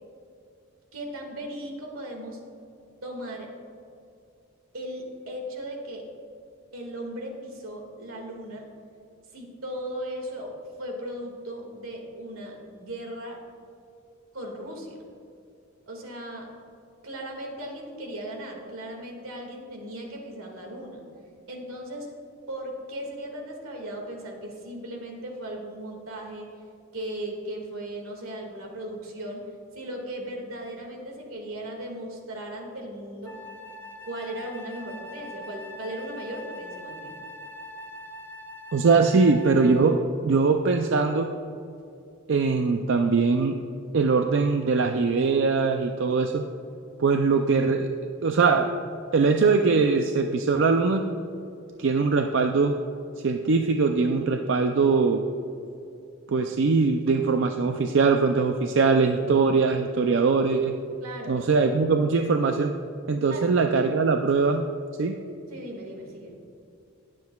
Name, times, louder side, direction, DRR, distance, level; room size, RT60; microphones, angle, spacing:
voice 1, 0.9-2.4 3.0-3.5 4.7-6.1 6.7-8.7 9.3-13.4 14.3-15.0 15.9-16.5 17.0-21.0 21.5-22.1 22.5-26.5 26.9-29.5 29.7-33.4 34.0-37.2 61.0-61.5 63.3-63.5 65.5-66.4, right 1 dB, 85° right, 1 dB, 1.9 m, -37 dB
Wind instrument woodwind instrument, 33.2-40.0, left 1 dB, 10° left, 0.4 m, -42 dB
voice 2, 38.7-41.3 42.3-43.6 43.9-46.4 47.0-48.7 49.1-51.0 51.8-52.7 53.2-55.2 56.3-60.7 61.3-62.7 63.1-64.6 65.0-65.2, right 4 dB, 60° right, 5 dB, 0.4 m, -22 dB
19.5 x 7.5 x 2.3 m, 2.6 s
head